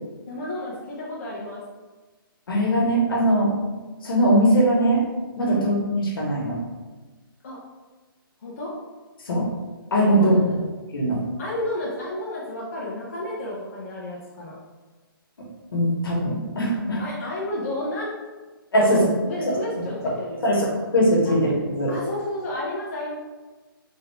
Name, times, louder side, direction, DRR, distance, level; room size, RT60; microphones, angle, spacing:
voice 1, 0.3-1.6 5.5-5.7 7.4-7.6 8.4-8.7 10.1-10.7 11.4-14.6 17.0-18.1 18.8-20.6 21.2-21.3 21.9-23.1, left 1 dB, 40° left, -6 dB, 0.5 m, -32 dB
voice 2, 2.5-3.5 4.0-5.0 5.4-6.6 9.2-9.5 9.9-10.5 10.9-11.2 15.7-17.0 18.7-19.0 19.4-19.6 20.0-20.1 20.4-21.9, right 1 dB, 70° left, -3 dB, 1.1 m, -20 dB
3.4 x 2.2 x 3.2 m, 1.3 s
hypercardioid pair, 175°, 12 cm